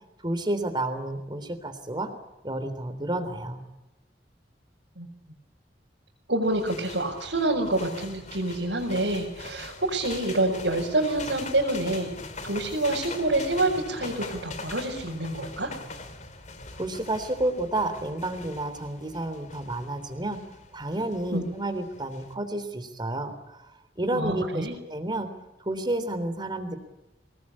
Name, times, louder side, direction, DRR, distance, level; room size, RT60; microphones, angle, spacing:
voice 1, 0.2-2.1 2.4-3.6 16.7-20.4 20.7-23.7 24.0-25.3 25.6-26.7, right 1 dB, 25° right, 10 dB, 3.5 m, -30 dB
voice 2, 6.3-12.1 12.4-15.7 21.3-21.5 24.1-24.7, right 2 dB, 90° right, -3 dB, 5.6 m, -27 dB
sound 1, 6.4-22.3, left 3 dB, 45° left, 2.7 m, -42 dB
24.0 x 20.0 x 8.6 m, 1.0 s
head